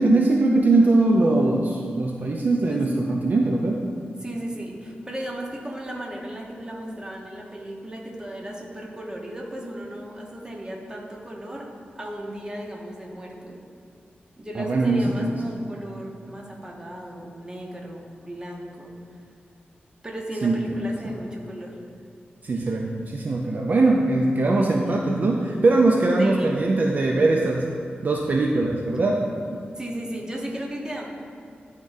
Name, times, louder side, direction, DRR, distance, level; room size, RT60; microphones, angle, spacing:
voice 1, 0.0-3.8 14.6-15.5 20.4-20.8 21.0-21.1 22.4-27.7 28.0-29.6, right 2 dB, 50° right, 0 dB, 0.4 m, -21 dB
voice 2, 4.2-13.6 14.4-19.0 20.0-21.8 26.2-26.5 29.8-31.0, right 1 dB, 20° right, -1 dB, 0.9 m, -35 dB
10.5 x 3.6 x 2.6 m, 2.4 s
wide cardioid pair, 90°, 4 cm